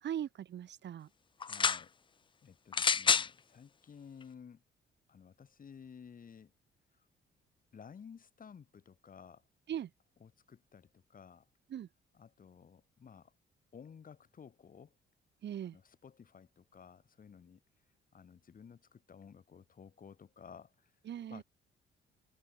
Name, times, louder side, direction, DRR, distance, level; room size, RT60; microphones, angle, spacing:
voice 1, 0.0-1.1 9.7-9.9 11.7-11.9 15.4-15.8 21.0-21.4, right 10 dB, 60° right, 1.7 m, -40 dB
voice 2, 1.4-1.9 2.4-4.6 5.1-6.5 7.7-9.4 10.2-11.5 12.1-13.3 13.7-14.9 15.7-17.6 18.1-20.9 21.3-21.4, left 7 dB, 45° left, 2.5 m, -54 dB
sound 1, 1.4-1.8 2.7-3.3 4.2-4.3, left 6 dB, 25° left, 0.4 m, -28 dB
cardioid pair, 90°, 20 cm